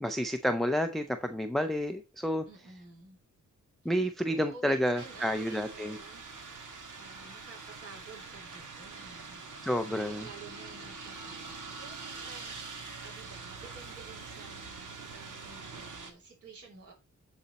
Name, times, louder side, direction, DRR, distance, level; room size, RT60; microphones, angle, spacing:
voice 1, 0.0-2.5 3.8-6.0 9.6-10.3, equal, ahead, 0.5 m, -30 dB
voice 2, 2.4-3.2 3.8-3.9 4.2-6.6 7.0-9.4 9.9-16.9, right 4 dB, 45° right, 3.6 m, -51 dB
sound 1, 4.9-16.1, right 4 dB, 75° right, 1.7 m, -44 dB
12.5 x 4.2 x 4.1 m
wide cardioid pair, 135°, 31 cm